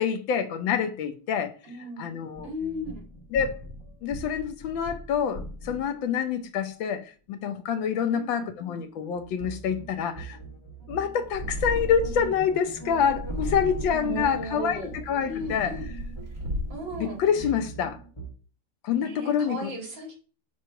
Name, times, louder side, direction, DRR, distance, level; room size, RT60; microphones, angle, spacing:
voice 1, 0.0-1.5 2.0-2.5 3.3-3.6 4.0-10.4 10.9-15.7 17.0-18.0 18.8-19.7, left 7 dB, 85° left, 1.5 m, -27 dB
voice 2, 1.6-2.1 2.4-3.0 8.0-8.5 14.0-14.9 15.2-15.9 16.7-17.5 19.0-20.1, equal, 80° right, 2.8 m, -36 dB
sound 1, 2.4-6.1 9.2-18.3, right 2 dB, 20° left, 0.9 m, -41 dB
Purr, 11.3-12.4 13.0-14.1 14.8-16.9, right 1 dB, 40° right, 2.8 m, -33 dB
5.9 x 3.1 x 5.5 m
omnidirectional pair, 2.0 m